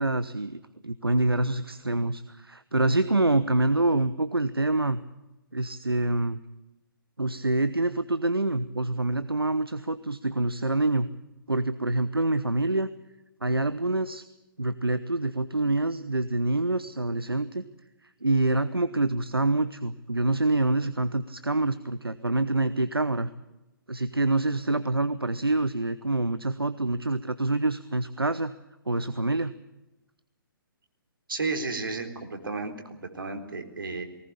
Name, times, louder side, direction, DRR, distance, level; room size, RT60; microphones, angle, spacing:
voice 1, 0.0-5.0 5.5-6.4 7.2-11.1 11.5-12.9 13.4-14.2 14.6-17.6 18.2-23.3 23.9-28.5 28.9-29.5, right 2 dB, 85° right, 15 dB, 0.9 m, -26 dB
voice 2, 31.3-32.7 33.1-34.0, right 3 dB, 65° right, 4 dB, 3.8 m, -32 dB
20.0 x 18.5 x 8.6 m, 0.99 s
figure-of-eight pair, 130°, 12 cm